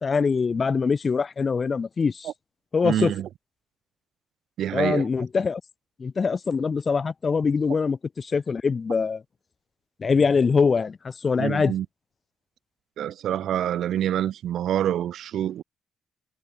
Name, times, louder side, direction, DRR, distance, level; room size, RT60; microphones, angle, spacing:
voice 1, 0.0-2.3 2.7-3.1 4.7-5.6 6.0-9.2 10.0-11.7, left 5 dB, 25° left, 2.6 m, -23 dB
voice 2, 2.8-3.3 4.6-5.1 11.4-11.9 13.0-15.6, right 11 dB, 60° right, 1.1 m, -26 dB
cardioid pair, 180°, 0 cm